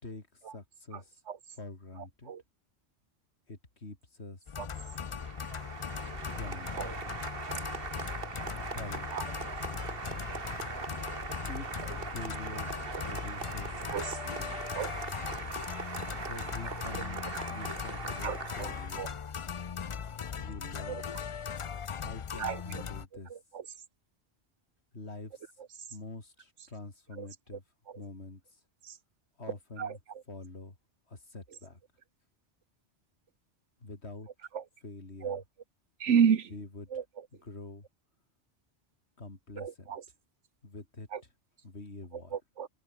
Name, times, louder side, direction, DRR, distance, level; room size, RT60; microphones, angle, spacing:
voice 1, 0.0-1.2 1.5-2.3 3.5-4.6 6.3-6.9 8.7-9.4 11.4-12.8 13.0-13.8 14.2-14.6 16.2-19.2 20.4-21.1 22.0-23.4 24.9-25.6 25.9-27.6 27.9-28.6 29.4-30.0 30.3-30.8 31.1-31.8 33.8-34.3 34.8-35.4 36.5-36.9 37.3-37.9 39.2-40.0 40.6-41.3 41.6-42.4, left 2 dB, 70° left, 3.8 m, -46 dB
sound 1, 4.5-23.1, left 7 dB, 45° left, 0.4 m, -39 dB
Applause, 4.7-19.2, right 4 dB, 55° right, 1.9 m, -40 dB
voice 2, 18.2-19.1 20.9-21.0 22.4-22.8 23.3-23.7 27.2-27.3 27.9-28.0 28.8-28.9 29.8-30.0 34.5-34.6 35.2-35.4 36.0-36.5 36.9-37.3 39.6-40.0 41.1-41.2 42.3-42.7, right 7 dB, 90° right, 1.5 m, -32 dB
omnidirectional pair, 1.2 m